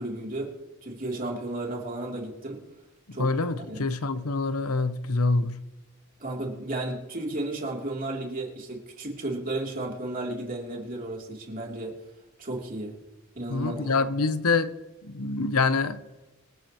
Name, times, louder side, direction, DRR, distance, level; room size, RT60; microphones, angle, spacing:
voice 1, 0.0-2.6 3.1-3.3 3.7-3.8 6.2-12.0 12.4-13.0 13.3-14.1, right 2 dB, 40° right, 3.2 m, -33 dB
voice 2, 3.1-5.6 13.5-14.7 15.0-16.0, left 3 dB, 80° left, 0.9 m, -26 dB
26.5 x 9.9 x 3.1 m
head